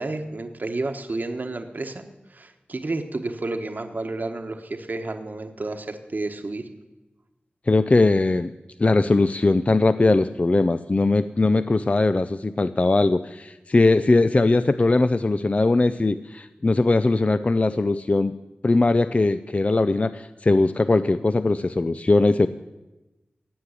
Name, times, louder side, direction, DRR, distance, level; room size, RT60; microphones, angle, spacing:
voice 1, 0.0-6.6, right 2 dB, 55° right, 6 dB, 1.2 m, -31 dB
voice 2, 7.7-8.5 8.8-18.3 18.6-22.5, left 2 dB, 35° left, 12 dB, 0.5 m, -20 dB
16.5 x 7.7 x 9.8 m, 1.0 s
wide cardioid pair, 75°, 4 cm